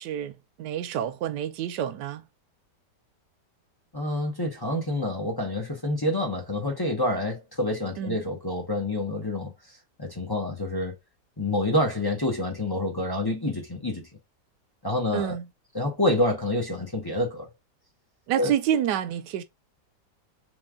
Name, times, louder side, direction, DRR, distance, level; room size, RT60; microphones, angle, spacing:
voice 1, 0.0-2.2 8.0-8.2 15.1-15.5 18.3-19.4, right 10 dB, 75° right, 1.2 m, -28 dB
voice 2, 3.9-9.5 10.0-10.9 11.4-14.1 14.8-15.3 15.7-17.5 18.3-18.5, left 1 dB, 25° left, 0.5 m, -27 dB
3.3 x 3.1 x 3.5 m
omnidirectional pair, 1.9 m